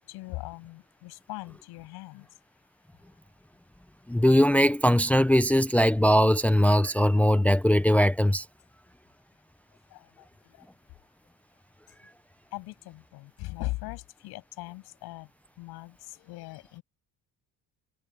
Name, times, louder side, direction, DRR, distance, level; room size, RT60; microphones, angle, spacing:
voice 1, 0.0-2.4 9.7-10.7 12.0-12.1 12.5-15.3 15.6-16.8, left 20 dB, 85° left, 7.7 m, -40 dB
voice 2, 4.1-8.4, equal, 5° left, 0.6 m, -21 dB
cardioid pair, 105°, 37 cm